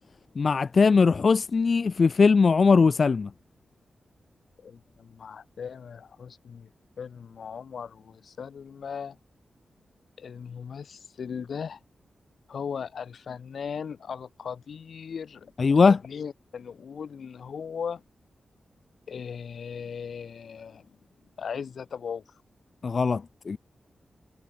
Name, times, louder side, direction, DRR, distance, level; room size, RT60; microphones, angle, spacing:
voice 1, 0.4-3.3 15.6-16.0 22.8-23.6, left 4 dB, 50° left, 2.3 m, -20 dB
voice 2, 4.6-6.7 7.0-9.2 10.2-11.8 12.5-15.5 15.9-18.0 19.1-21.0 21.4-22.2, left 6 dB, 75° left, 6.2 m, -38 dB
wide cardioid pair, 100°, 0 cm